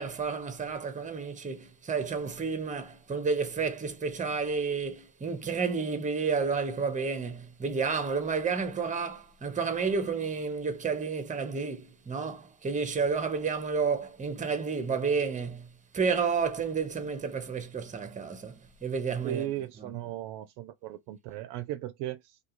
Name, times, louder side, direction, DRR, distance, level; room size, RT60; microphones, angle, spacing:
voice 1, 0.0-19.5 19.8-19.9, right 5 dB, 15° right, 0.7 m, -31 dB
voice 2, 19.2-22.4, right 13 dB, 60° right, 0.5 m, -37 dB
2.4 x 2.3 x 2.9 m
hypercardioid pair, 75°, 48 cm